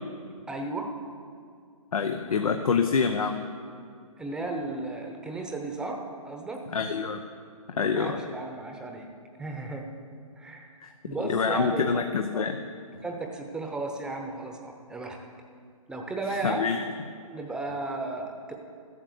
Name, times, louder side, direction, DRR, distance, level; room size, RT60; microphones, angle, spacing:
voice 1, 0.5-0.9 4.2-6.6 7.9-9.1 9.4-9.9 10.4-11.9 13.0-15.2 15.9-16.7 17.2-18.5, right 2 dB, 5° right, 2 dB, 0.9 m, -34 dB
voice 2, 1.9-3.4 6.7-7.2 7.7-8.2 10.8-10.9 11.2-12.6 16.3-16.8, left 5 dB, 75° left, 6 dB, 0.8 m, -26 dB
13.0 x 8.2 x 6.6 m, 2.3 s
hypercardioid pair, 140°, 19 cm